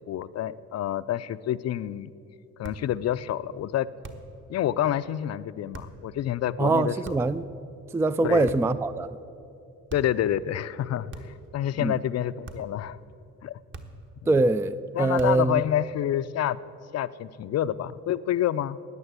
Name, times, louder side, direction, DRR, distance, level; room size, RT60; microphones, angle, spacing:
voice 1, 0.1-2.1 2.6-3.9 4.5-7.4 8.2-8.5 9.9-11.1 11.5-13.0 13.4-13.6 14.2-14.4 14.9-16.6 16.9-18.8, left 11 dB, 55° left, 0.5 m, -28 dB
sound 1, 2.6-2.9 4.0-4.4 5.7-6.0 7.0-7.4 8.4-8.9 9.9-10.2 11.1-11.5 12.4-12.8 13.7-14.1 15.2-15.5, right 2 dB, 40° right, 1.4 m, -43 dB
voice 2, 6.6-7.5 7.9-9.1 11.8-11.9 14.3-15.6, right 2 dB, 10° right, 0.3 m, -23 dB
13.5 x 9.5 x 8.2 m
cardioid pair, 90°, 30 cm